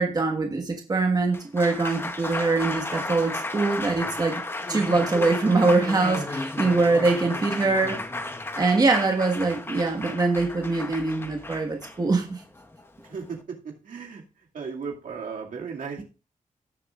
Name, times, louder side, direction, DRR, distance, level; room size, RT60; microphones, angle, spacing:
voice 1, 0.0-4.4 4.7-8.0 8.6-12.4, right 3 dB, 30° right, 1.4 m, -23 dB
Applause, 1.2-13.4, left 2 dB, 15° left, 0.8 m, -33 dB
voice 2, 13.0-14.2 14.5-16.0, right 5 dB, 80° right, 2.3 m, -36 dB
17.0 x 6.8 x 2.5 m
wide cardioid pair, 160°, 14 cm